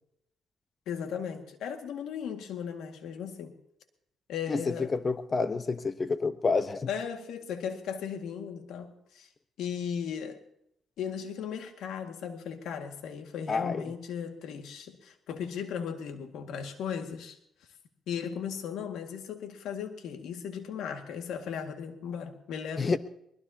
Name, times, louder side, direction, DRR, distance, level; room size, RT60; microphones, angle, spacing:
voice 1, 0.9-3.5 4.3-4.9 6.9-9.3 9.6-10.4 11.0-17.4 18.1-23.0, left 7 dB, 80° left, 2.0 m, -36 dB
voice 2, 4.5-6.9 13.5-13.8 22.8-23.0, left 4 dB, 35° left, 1.0 m, -29 dB
23.0 x 20.5 x 2.9 m
cardioid pair, 90°, 0 cm